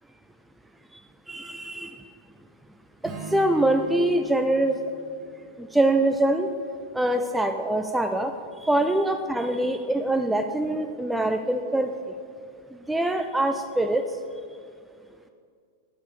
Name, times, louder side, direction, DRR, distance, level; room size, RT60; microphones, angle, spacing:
voice 1, 1.3-2.0 3.0-4.8 5.6-6.5 6.9-8.3 8.6-11.9 12.9-14.1, right 1 dB, 5° right, 6 dB, 0.4 m, -24 dB
Strum, 3.0-7.2, right 2 dB, 30° right, 1.6 m, -43 dB
10.5 x 7.1 x 4.9 m, 2.2 s
figure-of-eight pair, 90°, 0 cm